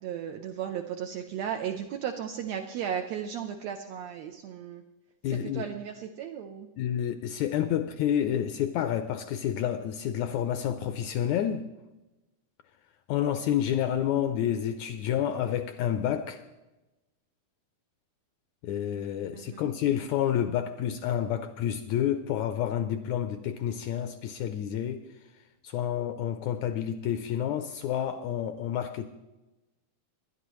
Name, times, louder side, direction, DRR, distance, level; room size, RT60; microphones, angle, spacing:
voice 1, 0.0-4.8 5.3-6.7 19.3-19.7, right 8 dB, 80° right, 5 dB, 1.6 m, -35 dB
voice 2, 5.2-5.7 6.8-11.7 13.1-16.4 18.6-25.1 25.6-29.1, left 10 dB, 80° left, 9 dB, 1.7 m, -29 dB
21.0 x 11.0 x 3.1 m, 1.0 s
omnidirectional pair, 3.7 m